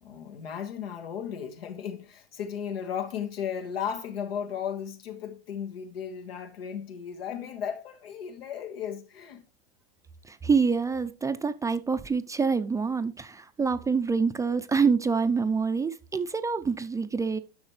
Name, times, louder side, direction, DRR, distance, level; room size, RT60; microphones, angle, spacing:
voice 1, 0.0-9.4, left 8 dB, 85° left, 1.7 m, -35 dB
voice 2, 10.2-17.4, right 5 dB, 10° right, 0.5 m, -26 dB
11.5 x 6.1 x 3.2 m
hypercardioid pair, 120°, 29 cm